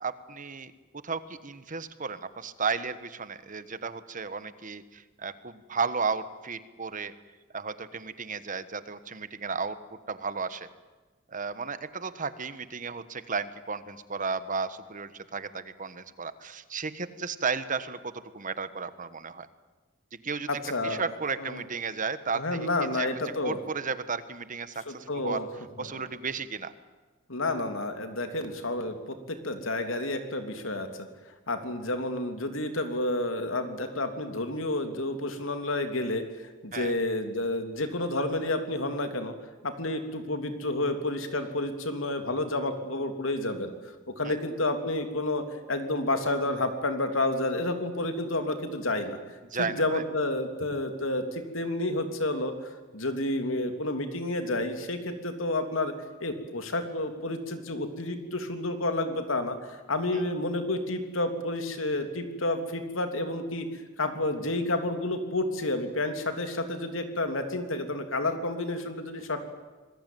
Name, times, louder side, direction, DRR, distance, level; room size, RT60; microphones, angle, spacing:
voice 1, 0.0-0.7 1.0-7.1 7.5-9.8 10.1-10.7 11.3-19.5 20.2-20.5 20.8-23.1 23.4-25.4 25.8-26.7 36.7-36.9 44.2-44.3 49.4-50.0, right 5 dB, 40° right, 13 dB, 1.3 m, -34 dB
voice 2, 20.5-21.1 21.4-21.6 22.3-23.6 24.9-25.5 25.8-25.9 27.3-31.1 31.5-39.3 39.6-43.7 44.1-45.4 45.7-49.2 49.6-52.5 52.9-55.9 56.2-63.7 64.0-69.4, left 2 dB, 85° left, 7 dB, 3.1 m, -30 dB
26.0 x 20.5 x 9.3 m, 1.3 s
head